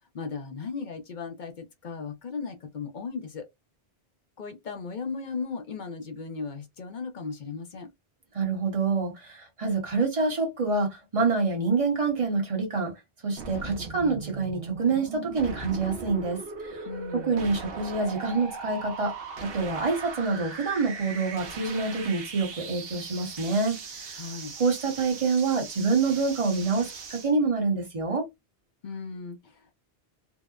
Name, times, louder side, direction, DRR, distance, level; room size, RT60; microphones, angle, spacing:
voice 1, 0.1-3.5 4.4-7.9 16.9-17.4 24.1-24.5 28.8-29.7, left 5 dB, 55° left, 0.7 m, -36 dB
voice 2, 8.3-12.9 13.2-16.8 17.1-19.1 19.4-24.2 24.6-28.3, right 4 dB, 35° right, 0.9 m, -27 dB
sound 1, 13.4-27.3, right 5 dB, 70° right, 0.9 m, -39 dB
2.8 x 2.0 x 2.3 m
omnidirectional pair, 1.0 m